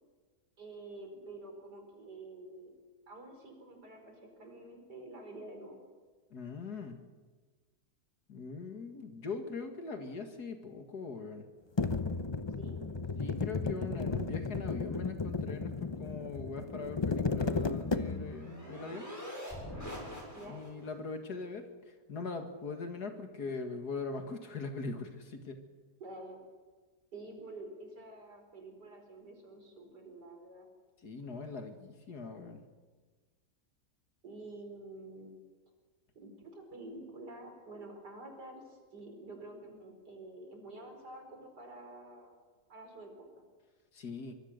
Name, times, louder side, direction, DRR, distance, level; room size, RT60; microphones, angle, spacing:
voice 1, 0.6-2.7 3.1-5.8 12.6-12.8 20.3-20.6 26.0-26.4 27.1-30.7 34.2-35.3 36.2-42.3 42.7-43.4, right 2 dB, 90° right, 4 dB, 5.1 m, -48 dB
voice 2, 6.3-7.0 8.3-11.5 13.2-19.1 20.4-25.6 31.0-32.6 43.9-44.3, left 4 dB, 75° left, 6 dB, 2.5 m, -41 dB
sound 1, 11.8-18.5, left 4 dB, 25° left, 0.6 m, -34 dB
sound 2, 17.6-20.9, equal, 10° left, 6.9 m, -45 dB
24.0 x 22.5 x 6.7 m, 1.4 s
omnidirectional pair, 1.7 m